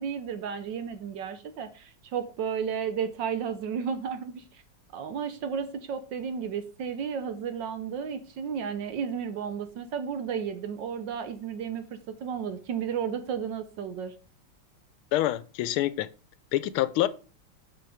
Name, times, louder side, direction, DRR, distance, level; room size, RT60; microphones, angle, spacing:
voice 1, 0.0-4.6 4.9-14.1, right 7 dB, 65° right, 1.3 m, -33 dB
voice 2, 15.1-16.1 16.5-17.1, left 14 dB, 80° left, 1.4 m, -26 dB
6.0 x 5.9 x 4.9 m
omnidirectional pair, 2.4 m